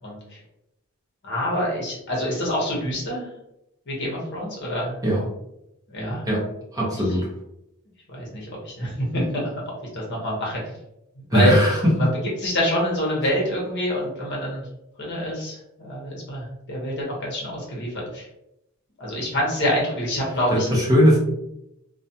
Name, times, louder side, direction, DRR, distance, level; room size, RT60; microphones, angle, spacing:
voice 1, 0.0-0.4 1.2-3.3 3.9-5.0 5.9-6.2 7.0-7.2 8.1-10.6 11.3-11.6 11.9-12.1 12.4-14.7 15.0-18.3 19.0-20.7, equal, 50° left, -3 dB, 0.9 m, -26 dB
voice 2, 6.7-7.3 11.3-12.1 20.5-21.2, equal, 15° right, -5 dB, 0.6 m, -19 dB
2.4 x 2.2 x 2.6 m, 0.83 s
head